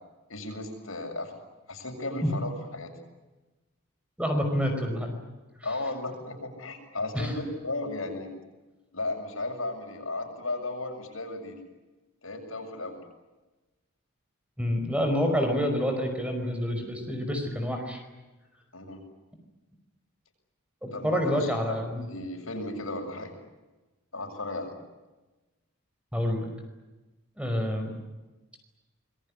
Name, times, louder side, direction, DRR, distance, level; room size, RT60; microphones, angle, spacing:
voice 1, 0.3-1.3 1.7-2.9 5.6-8.3 8.9-11.6 12.2-13.0 18.7-19.0 20.9-23.4 24.1-24.7, left 2 dB, 75° left, 3 dB, 7.4 m, -35 dB
voice 2, 4.2-5.1 7.1-7.3 14.6-18.0 20.8-22.0 26.1-26.5 27.4-27.9, equal, 5° right, 4 dB, 5.4 m, -28 dB
26.5 x 22.0 x 9.9 m, 1.1 s
head